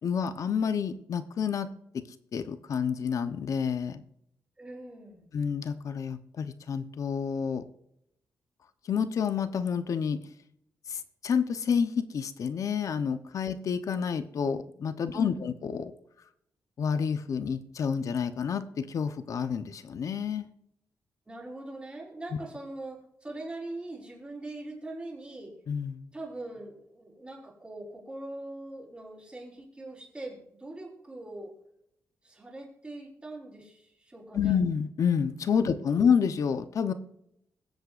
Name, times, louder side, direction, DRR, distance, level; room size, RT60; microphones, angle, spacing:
voice 1, 0.0-1.7 2.3-4.0 5.3-7.6 8.8-10.2 10.9-15.9 16.8-20.5 25.7-26.1 34.3-36.9, left 7 dB, 65° left, 10 dB, 1.0 m, -29 dB
voice 2, 4.6-5.3 15.1-15.5 21.3-25.5 26.1-31.5 32.2-34.6 35.6-36.1, right 2 dB, 20° right, -1 dB, 4.5 m, -42 dB
21.5 x 8.0 x 2.6 m, 0.76 s
cardioid pair, 105°, 6 cm